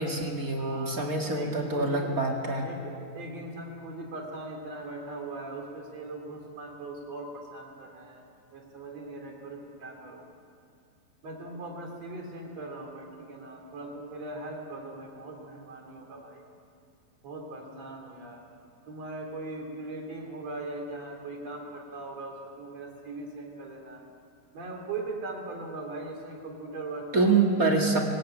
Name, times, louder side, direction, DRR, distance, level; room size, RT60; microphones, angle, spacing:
voice 1, 0.0-2.7 27.1-28.0, right 3 dB, 30° right, 0 dB, 1.9 m, -26 dB
voice 2, 0.6-1.1 1.3-2.1 2.6-8.2 8.5-10.3 11.2-16.4 17.2-18.4 18.9-24.0 24.5-27.3 27.8-28.0, right 2 dB, 45° right, 1 dB, 4.0 m, -40 dB
21.5 x 18.5 x 8.9 m, 2.4 s
omnidirectional pair, 4.2 m